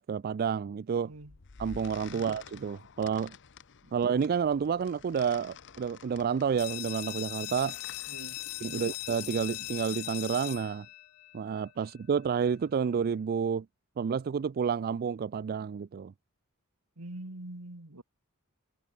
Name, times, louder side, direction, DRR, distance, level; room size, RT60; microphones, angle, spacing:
voice 1, 0.0-1.1 1.6-3.4 3.9-7.8 8.6-10.9 11.3-13.7 14.0-16.1, right 6 dB, 45° right, 0.3 m, -30 dB
voice 2, 1.0-1.4 2.1-2.3 3.8-3.9 8.1-8.4 8.7-8.9 11.8-11.9 17.0-18.0, right 1 dB, 85° right, 2.2 m, -44 dB
sound 1, 1.1-9.8, left 6 dB, 55° left, 0.9 m, -51 dB
sound 2, 6.6-12.0, left 19 dB, 75° left, 0.4 m, -40 dB
head